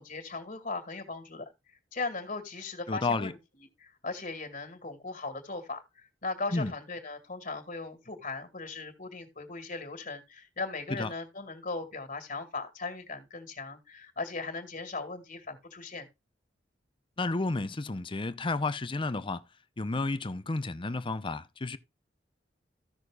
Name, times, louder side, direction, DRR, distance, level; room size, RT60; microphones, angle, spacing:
voice 1, 0.0-3.4 3.8-16.1, left 3 dB, 50° left, 2.2 m, -38 dB
voice 2, 2.9-3.3 6.5-6.7 10.9-11.1 17.2-19.4 19.8-21.8, left 3 dB, 30° left, 0.7 m, -31 dB
15.0 x 6.3 x 2.4 m
head